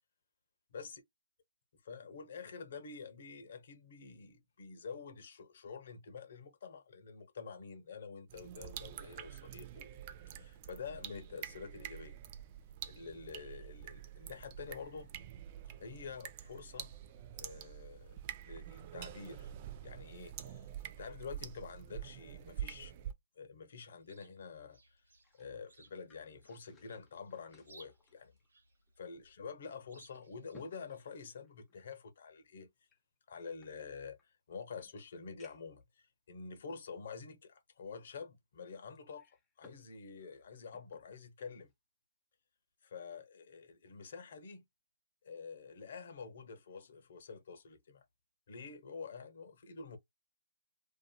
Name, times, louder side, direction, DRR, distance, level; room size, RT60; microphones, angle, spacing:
voice 1, 1.8-9.9 10.3-12.2 12.9-15.1 15.8-17.0 17.3-19.5 19.8-22.9 23.4-25.0 25.4-28.3 29.0-32.7 33.3-41.7 42.8-44.6 45.2-48.0 48.5-50.0, left 5 dB, 55° left, 0.9 m, -48 dB
sound 1, 8.3-23.1, right 10 dB, 30° right, 0.4 m, -47 dB
Chirp tweet, 23.7-31.3, right 3 dB, 75° right, 1.0 m, -65 dB
sound 2, 25.0-29.0 29.3-29.4 30.0-32.0 32.8-34.3 34.8-34.9 35.4-35.8 36.6-36.7 38.9-39.9 40.2-41.1 41.5-41.7, left 3 dB, 10° left, 0.6 m, -65 dB
2.7 x 2.4 x 2.2 m
hypercardioid pair, 150°, 0 cm